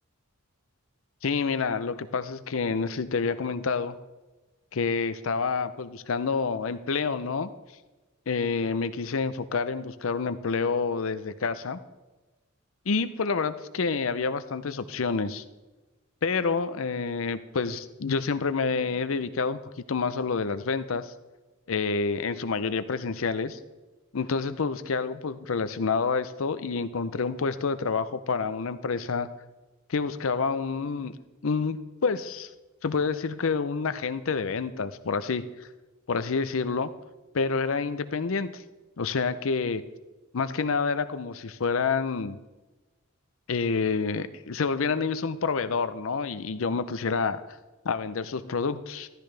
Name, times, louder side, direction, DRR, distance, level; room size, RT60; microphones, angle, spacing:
voice 1, 1.2-4.0 4.7-7.5 8.3-11.8 12.9-15.4 16.2-19.6 19.9-21.1 21.7-23.6 24.1-29.3 29.9-31.1 31.4-32.5 32.8-35.4 36.1-36.9 37.3-38.6 39.0-39.8 40.3-42.4 43.5-47.4 47.8-49.1, left 4 dB, 70° left, 12 dB, 0.6 m, -28 dB
14.0 x 13.5 x 3.3 m, 1.1 s
head